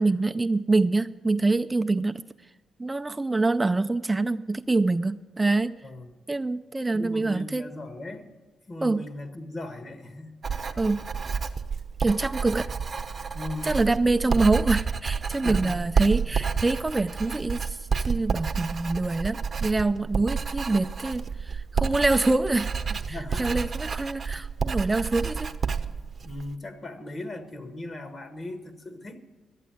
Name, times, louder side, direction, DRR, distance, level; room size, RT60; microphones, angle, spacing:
voice 1, 0.0-2.2 2.8-5.7 6.3-7.7 8.8-9.0 10.8-11.0 12.0-12.7 13.6-17.8 18.1-22.7 23.1-25.5, right 3 dB, 20° right, 8 dB, 0.4 m, -25 dB
voice 2, 5.8-6.2 6.9-8.3 8.7-10.3 13.3-13.9 15.4-15.8 16.3-16.4 23.1-23.6 26.2-29.2, left 2 dB, 45° left, 8 dB, 1.6 m, -38 dB
Writing, 10.4-26.5, right 5 dB, 45° right, 0.8 m, -30 dB
12.0 x 8.3 x 9.1 m, 1.3 s
supercardioid pair, 55°, 0 cm